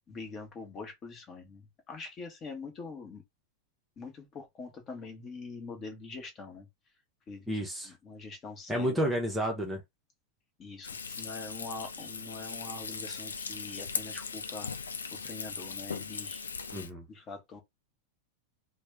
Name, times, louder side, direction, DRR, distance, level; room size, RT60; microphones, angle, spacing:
voice 1, 0.1-3.2 4.0-6.7 7.3-7.5 7.8-9.0 10.6-10.9 11.2-14.7 15.1-16.4 17.1-17.6, left 4 dB, 30° left, 1.0 m, -44 dB
voice 2, 7.5-7.9 8.7-9.8 11.1-11.2 16.7-17.0, equal, 10° right, 0.7 m, -31 dB
Frying (food), 10.8-16.9, left 5 dB, 70° left, 0.4 m, -39 dB
3.2 x 2.0 x 3.1 m
figure-of-eight pair, 90°, 0 cm